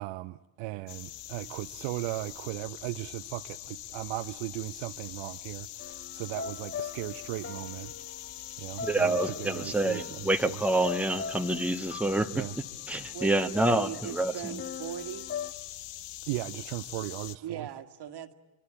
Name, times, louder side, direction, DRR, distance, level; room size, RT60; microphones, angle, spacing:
voice 1, 0.0-8.2 8.6-10.6 12.3-12.5 13.7-13.8 16.3-17.7, right 19 dB, 65° right, 0.8 m, -37 dB
sound 1, 0.9-17.4, left 14 dB, 55° left, 1.0 m, -43 dB
sound 2, 5.8-13.8 14.6-15.5, left 7 dB, 25° left, 1.3 m, -41 dB
voice 2, 8.8-12.5 12.9-14.6, right 2 dB, 5° right, 1.3 m, -27 dB
voice 3, 13.1-15.3 17.4-18.3, right 10 dB, 50° right, 1.9 m, -39 dB
24.5 x 24.0 x 8.6 m
hypercardioid pair, 60°, 50 cm